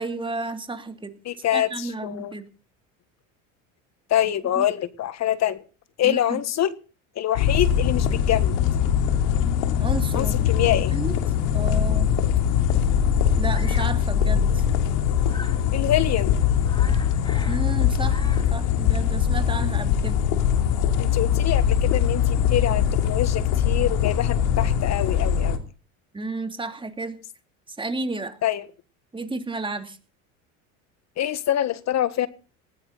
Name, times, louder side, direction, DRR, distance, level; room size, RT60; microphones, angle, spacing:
voice 1, 0.0-1.1 1.5-2.5 4.6-4.7 6.0-6.4 9.8-10.5 10.9-11.2 11.5-12.1 13.3-14.6 17.5-18.2 18.5-20.2 26.1-27.2 27.7-28.4 29.1-30.0, right 3 dB, 15° right, 2.9 m, -32 dB
voice 2, 1.2-2.3 4.1-5.6 6.0-6.7 7.1-8.6 10.1-10.9 15.7-16.3 21.0-25.6 28.4-28.7 31.2-32.3, left 11 dB, 45° left, 1.6 m, -25 dB
sound 1, 7.4-25.6, left 9 dB, 70° left, 3.2 m, -22 dB
Bird vocalization bird call bird song, 13.5-14.0 15.2-15.6 16.1-16.2 16.5-17.7 17.9-18.6, left 2 dB, 10° left, 3.2 m, -41 dB
20.0 x 16.0 x 4.1 m
supercardioid pair, 100°, 38 cm